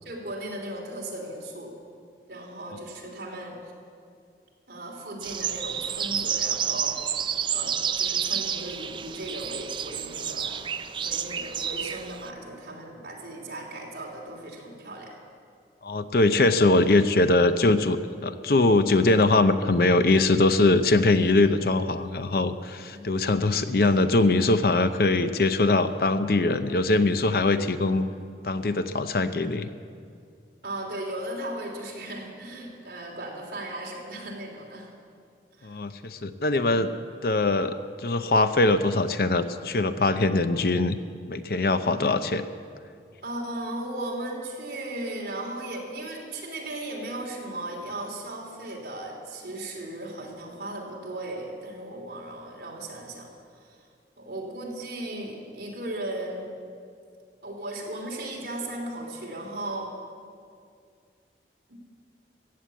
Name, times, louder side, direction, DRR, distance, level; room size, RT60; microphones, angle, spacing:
voice 1, 0.0-1.7 2.3-3.6 4.7-7.1 7.5-10.7 11.0-15.2 23.1-23.3 30.6-34.9 35.6-35.8 43.2-53.3 53.6-53.8 54.2-56.5 57.4-59.9 61.7-61.8, right 1 dB, 65° right, -2 dB, 3.2 m, -36 dB
sound 1, 5.2-12.3, right 8 dB, 25° right, 0.4 m, -30 dB
voice 2, 15.8-28.1 28.4-29.7 35.6-36.9 37.2-37.8 38.0-41.0 41.3-42.4, left 2 dB, 55° left, 10 dB, 0.6 m, -22 dB
15.0 x 8.6 x 8.3 m, 2.2 s
head